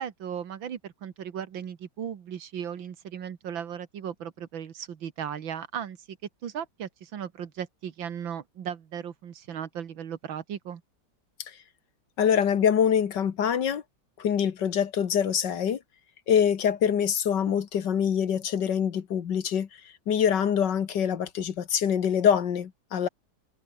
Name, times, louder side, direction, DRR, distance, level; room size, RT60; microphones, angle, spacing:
voice 1, 0.0-6.2 6.4-10.8, right 8 dB, 90° right, 2.3 m, -36 dB
voice 2, 12.2-13.8 14.2-15.8 16.3-19.7 20.1-23.1, left 8 dB, 65° left, 2.0 m, -24 dB
omnidirectional pair, 2.1 m